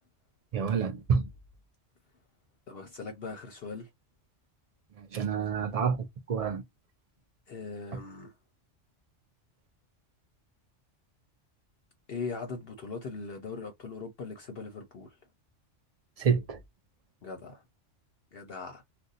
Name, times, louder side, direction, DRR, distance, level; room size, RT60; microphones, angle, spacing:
voice 1, 0.5-1.2 5.1-6.6 16.2-16.6, right 6 dB, 80° right, 0.3 m, -28 dB
voice 2, 2.7-3.9 7.5-8.3 12.1-15.2 17.2-17.6 18.3-18.8, left 4 dB, 60° left, 0.8 m, -40 dB
2.6 x 2.2 x 3.8 m
omnidirectional pair, 1.3 m